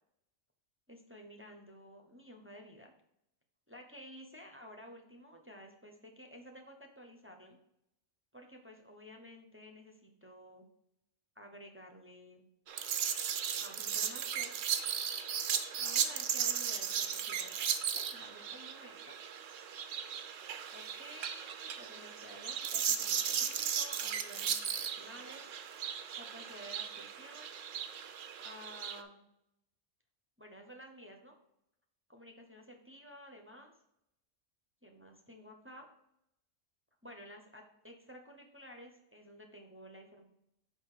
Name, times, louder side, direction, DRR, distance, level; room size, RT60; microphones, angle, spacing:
voice 1, 0.9-2.9 3.7-7.6 8.3-10.7 11.4-12.4 13.6-14.5 15.8-17.6 17.9-19.2 20.7-25.4 26.1-27.6 28.4-29.2 30.4-31.4 32.1-33.7 34.8-35.9 37.0-40.2, equal, 10° right, 2 dB, 0.7 m, -53 dB
sound 1, 12.7-29.0, right 8 dB, 75° right, 1.0 m, -36 dB
6.3 x 5.1 x 4.9 m, 0.81 s
omnidirectional pair, 1.4 m